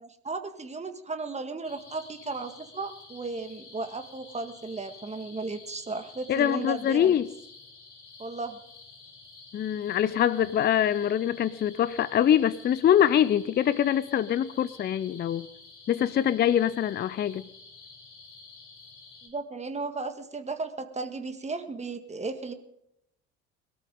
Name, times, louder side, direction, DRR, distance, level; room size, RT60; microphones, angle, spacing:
voice 1, 0.0-7.2 8.2-8.6 19.2-22.5, right 3 dB, 20° right, 8 dB, 1.8 m, -35 dB
sound 1, 1.6-19.3, left 4 dB, 80° left, 4.6 m, -50 dB
voice 2, 6.3-7.3 9.5-15.5 15.9-17.5, left 10 dB, 30° left, 18 dB, 0.6 m, -24 dB
22.0 x 13.5 x 3.8 m, 0.79 s
figure-of-eight pair, 60°, 34 cm